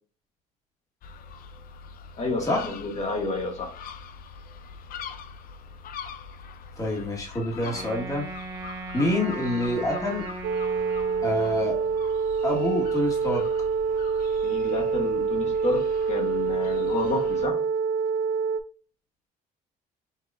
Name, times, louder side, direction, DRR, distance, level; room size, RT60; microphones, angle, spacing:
sound 1, 1.0-17.5, left 6 dB, 60° left, 0.5 m, -43 dB
voice 1, 2.2-3.7 14.4-17.7, left 2 dB, 40° left, 1.3 m, -30 dB
voice 2, 6.8-8.3 8.9-10.2 11.2-11.8 12.4-13.4, left 1 dB, 20° left, 1.6 m, -27 dB
Wind instrument woodwind instrument, 7.6-12.0, right 3 dB, 25° right, 1.3 m, -38 dB
sound 2, 10.4-18.6, right 5 dB, 60° right, 0.4 m, -26 dB
5.6 x 2.8 x 2.5 m
cardioid pair, 110°, 17 cm